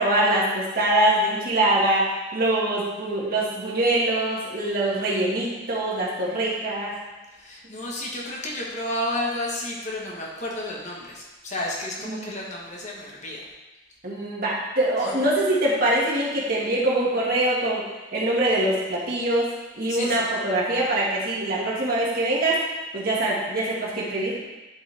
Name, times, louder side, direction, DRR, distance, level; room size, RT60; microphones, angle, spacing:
voice 1, 0.0-6.9 12.0-12.3 14.0-17.8 18.1-19.5 19.8-22.6 22.9-24.4, right 1 dB, 50° right, -6 dB, 2.0 m, -23 dB
voice 2, 7.3-13.4 15.0-15.1 19.9-20.3, left 1 dB, 40° left, -3 dB, 1.4 m, -31 dB
11.0 x 5.2 x 3.5 m, 1.1 s
head